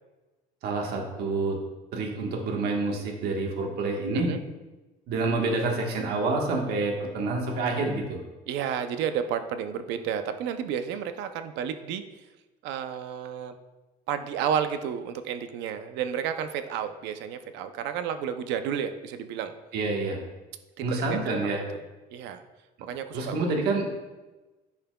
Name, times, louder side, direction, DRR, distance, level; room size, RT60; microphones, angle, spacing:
voice 1, 0.6-1.6 1.9-4.3 5.1-8.2 19.7-20.2 20.8-21.6 23.1-23.9, right 3 dB, 65° right, 1 dB, 1.4 m, -28 dB
voice 2, 8.5-12.2 12.6-13.5 14.1-19.5 20.8-21.8 22.1-22.4 22.8-23.5, right 8 dB, 85° right, 9 dB, 0.6 m, -32 dB
10.5 x 5.7 x 2.3 m, 1.1 s
cardioid pair, 160°, 18 cm